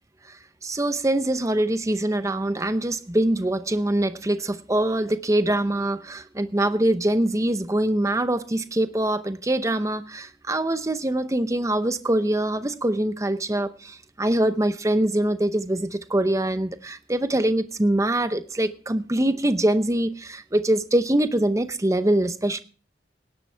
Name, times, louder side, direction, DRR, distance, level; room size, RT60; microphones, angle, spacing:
voice 1, 0.6-22.6, right 1 dB, 15° right, 0.7 m, -24 dB
17.5 x 11.5 x 3.4 m
head